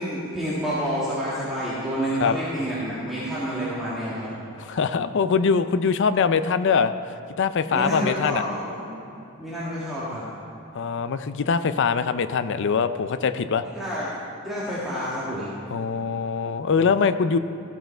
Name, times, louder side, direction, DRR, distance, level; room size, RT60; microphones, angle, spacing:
voice 1, 0.0-4.3 7.7-8.9 9.4-10.3 13.8-14.1 14.4-15.5, equal, ahead, -11 dB, 1.8 m, -28 dB
voice 2, 4.7-6.9 7.4-8.4 10.7-13.6 15.7-17.4, left 5 dB, 55° left, 12 dB, 0.5 m, -22 dB
14.5 x 7.9 x 4.4 m, 3.0 s
head